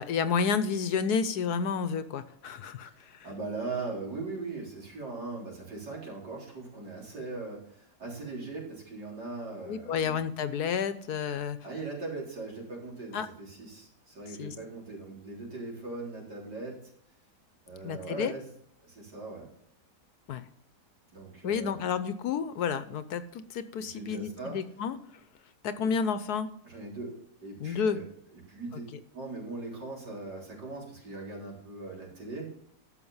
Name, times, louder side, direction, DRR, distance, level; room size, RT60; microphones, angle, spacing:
voice 1, 0.0-3.2 9.7-11.6 13.1-13.3 14.4-14.5 17.8-18.3 20.3-20.4 21.4-25.0 25.6-26.5 27.6-28.0, left 6 dB, 70° left, 12 dB, 1.3 m, -30 dB
voice 2, 3.0-10.3 11.6-16.8 17.6-18.5 18.8-19.5 21.1-21.9 23.8-24.6 25.8-25.9 26.6-28.0 28.3-28.8 29.1-32.5, right 3 dB, 80° right, -4 dB, 4.4 m, -40 dB
12.5 x 6.6 x 5.6 m, 0.69 s
omnidirectional pair, 1.8 m